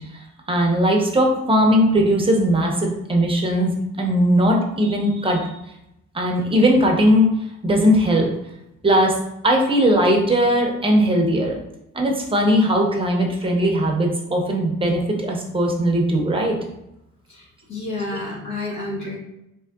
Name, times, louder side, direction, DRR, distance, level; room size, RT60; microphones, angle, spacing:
voice 1, 0.5-5.5 6.1-7.3 7.6-8.3 8.8-9.1 9.4-11.6 11.9-16.6, equal, 15° right, 0 dB, 0.6 m, -19 dB
voice 2, 17.3-19.2, left 2 dB, 70° left, -3 dB, 0.9 m, -30 dB
3.7 x 3.0 x 2.2 m, 0.85 s
cardioid pair, 135°, 31 cm